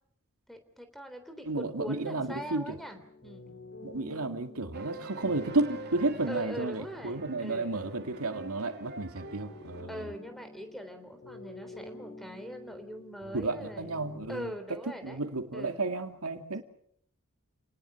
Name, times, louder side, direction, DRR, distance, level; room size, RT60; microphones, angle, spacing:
voice 1, 0.5-3.5 6.3-7.8 9.9-13.9 14.3-15.2 15.5-15.8, equal, ahead, 8 dB, 3.5 m, -42 dB
voice 2, 1.5-2.8 3.8-10.1 13.3-14.5 15.0-16.6, right 2 dB, 90° right, 7 dB, 2.3 m, -32 dB
sound 1, 1.8-14.5, left 2 dB, 65° left, 4.1 m, -49 dB
sound 2, 4.7-9.8, right 3 dB, 50° right, 2.9 m, -46 dB
29.5 x 19.5 x 7.1 m, 0.65 s
head